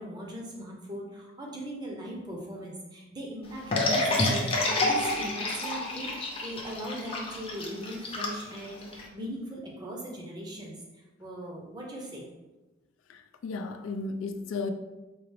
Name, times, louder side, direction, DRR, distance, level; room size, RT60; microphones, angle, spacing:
voice 1, 0.0-12.3, equal, 20° right, -1 dB, 0.6 m, -39 dB
sound 1, 3.7-9.0, left 2 dB, 30° left, 0.6 m, -28 dB
voice 2, 13.1-14.7, left 3 dB, 90° left, 7 dB, 0.3 m, -34 dB
4.6 x 2.4 x 3.3 m, 1.1 s
head